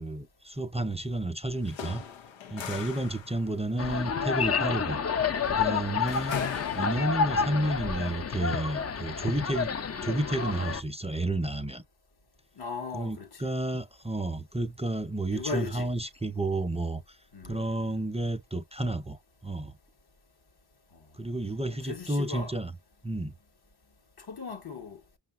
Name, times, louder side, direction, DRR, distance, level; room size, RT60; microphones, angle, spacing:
voice 1, 0.0-2.0 2.5-5.0 5.5-6.4 6.7-9.7 10.0-11.8 12.9-17.2 17.5-19.8 21.1-22.7 23.0-23.4, right 1 dB, 15° right, 0.6 m, -31 dB
sound 1, 1.5-7.4, left 8 dB, 90° left, 0.7 m, -40 dB
sound 2, 3.8-10.8, left 6 dB, 35° left, 0.5 m, -29 dB
voice 2, 12.6-13.4 15.3-15.9 17.3-18.0 21.7-22.5 24.2-25.0, left 4 dB, 60° left, 1.1 m, -38 dB
5.3 x 2.3 x 2.4 m
cardioid pair, 45°, 44 cm